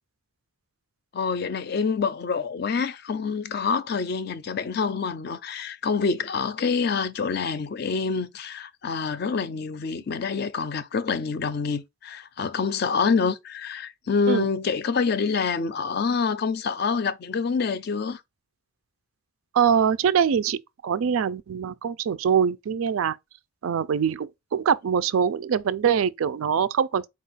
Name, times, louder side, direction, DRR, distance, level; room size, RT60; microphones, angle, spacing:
voice 1, 1.1-18.2, left 5 dB, 50° left, 0.4 m, -26 dB
voice 2, 19.5-23.2 23.6-27.1, right 7 dB, 85° right, 0.4 m, -23 dB
4.3 x 2.4 x 3.9 m
head